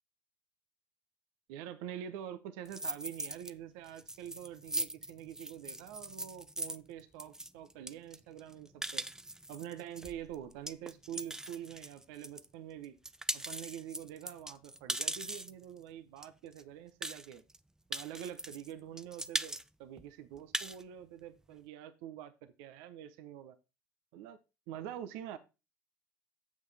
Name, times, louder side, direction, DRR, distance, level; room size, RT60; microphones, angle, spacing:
voice 1, 1.5-9.1 9.5-13.0 13.3-17.4 17.9-23.6 24.1-24.4 24.7-25.4, right 10 dB, 70° right, 12 dB, 0.9 m, -46 dB
sound 1, 2.7-3.5 3.9-12.5 12.8-15.6 16.2-16.3 16.5-16.6 17.0-17.6 17.9-18.7 19.0-19.6 20.0-20.1 20.4-20.8, right 1 dB, 5° right, 0.5 m, -40 dB
9.4 x 7.5 x 3.4 m, 0.28 s
hypercardioid pair, 60°, 8 cm